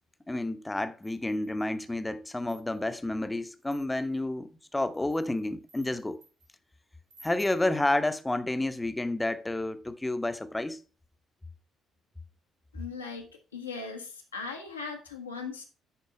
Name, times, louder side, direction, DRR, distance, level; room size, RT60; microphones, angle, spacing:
voice 1, 0.3-6.2 7.2-10.8, left 2 dB, 15° left, 0.9 m, -30 dB
sound 1, 1.0-1.8 2.3-3.0 3.6-4.2 4.8-6.5 7.1-7.7, right 3 dB, 75° right, 3.2 m, -57 dB
voice 2, 12.7-15.6, left 4 dB, 85° left, 1.3 m, -39 dB
10.5 x 4.6 x 4.7 m
figure-of-eight pair, 45°, 0 cm